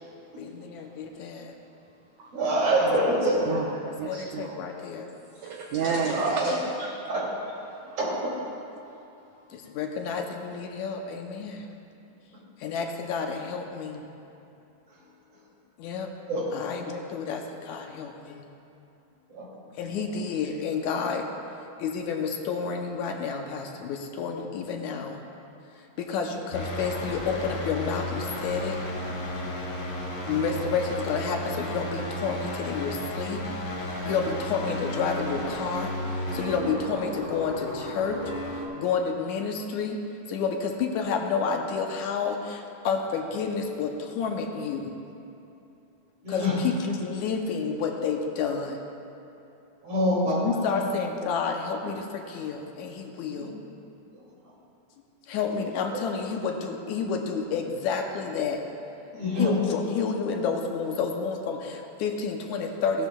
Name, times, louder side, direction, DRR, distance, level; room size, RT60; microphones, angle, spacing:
voice 1, 0.4-1.6 3.0-3.1 3.3-3.4 4.0-5.1 6.4-6.5 9.5-11.7 12.6-14.1 15.8-16.1 16.5-18.5 19.8-21.3 21.8-25.2 26.0-28.8 30.3-33.4 33.8-35.9 36.2-38.2 38.8-40.0 40.3-45.0 46.3-48.8 50.3-53.5 55.3-58.6 59.4-63.1, left 5 dB, 75° left, 3 dB, 2.0 m, -30 dB
voice 2, 2.3-3.4 5.9-6.5 8.0-8.3 16.3-16.4 19.3-19.5 46.2-46.6 49.8-50.8 53.3-53.6 54.2-54.3 55.5-55.6 59.1-59.5, equal, 50° right, -5 dB, 3.3 m, -26 dB
voice 3, 2.8-4.6 5.3-7.1 7.7-8.0, right 5 dB, 75° right, 0 dB, 1.7 m, -33 dB
sound 1, 26.5-38.7, left 1 dB, 40° left, 1.1 m, -33 dB
16.0 x 11.5 x 2.3 m, 2.8 s
omnidirectional pair, 3.7 m